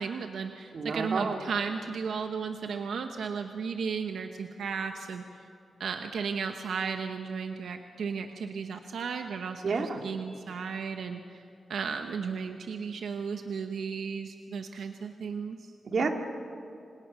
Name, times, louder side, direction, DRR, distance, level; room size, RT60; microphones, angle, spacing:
voice 1, 0.0-5.5 5.8-11.4 11.7-15.7, right 5 dB, 80° right, 6 dB, 1.1 m, -34 dB
voice 2, 0.7-1.4 9.6-10.0 15.9-16.1, right 4 dB, 55° right, 4 dB, 2.2 m, -29 dB
27.5 x 26.5 x 6.3 m, 2.6 s
wide cardioid pair, 140°, 0 cm